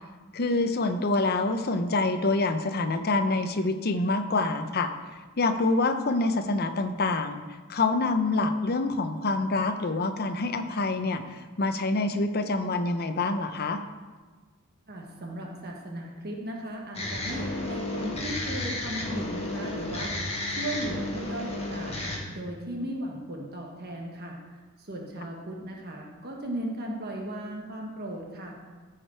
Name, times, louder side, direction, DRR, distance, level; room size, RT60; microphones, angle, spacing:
voice 1, 0.3-4.9 5.4-7.4 7.7-13.8, left 3 dB, 45° left, 8 dB, 0.7 m, -26 dB
voice 2, 14.9-20.2 20.5-22.0 22.3-24.4 24.8-28.6, right 1 dB, 45° right, 0 dB, 1.3 m, -36 dB
sound 1, 16.9-22.2, left 2 dB, 30° left, 1.5 m, -32 dB
14.0 x 5.0 x 4.4 m, 1.4 s
head